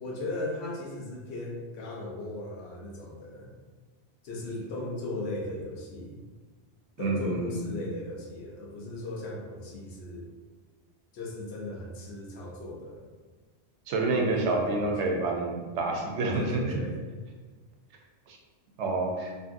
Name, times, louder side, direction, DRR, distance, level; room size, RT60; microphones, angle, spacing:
voice 1, 0.0-3.5 4.2-6.2 7.0-10.3 11.1-13.1 14.1-15.2 16.3-17.0, left 2 dB, 75° left, -2 dB, 0.9 m, -37 dB
voice 2, 7.0-7.7 13.9-16.6 18.3-18.4 18.8-19.3, right 2 dB, 90° right, 0 dB, 0.9 m, -28 dB
2.6 x 2.6 x 2.5 m, 1.4 s
omnidirectional pair, 1.1 m